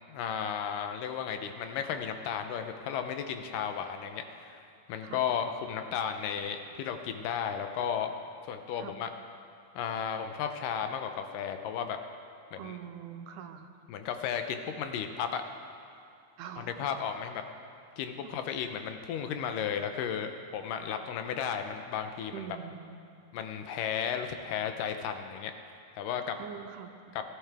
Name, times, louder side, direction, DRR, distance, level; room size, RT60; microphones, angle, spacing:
voice 1, 0.1-4.6 4.9-8.1 8.5-9.1 9.8-12.0 12.5-12.8 13.9-15.4 16.6-17.4 18.0-22.5 23.3-25.5 26.0-26.4, left 8 dB, 85° left, 7 dB, 2.4 m, -34 dB
voice 2, 12.6-13.7 16.4-16.9 18.2-18.3 22.3-23.1 26.4-26.9, right 9 dB, 80° right, 6 dB, 2.1 m, -43 dB
19.0 x 11.5 x 3.5 m, 2.5 s
omnidirectional pair, 3.7 m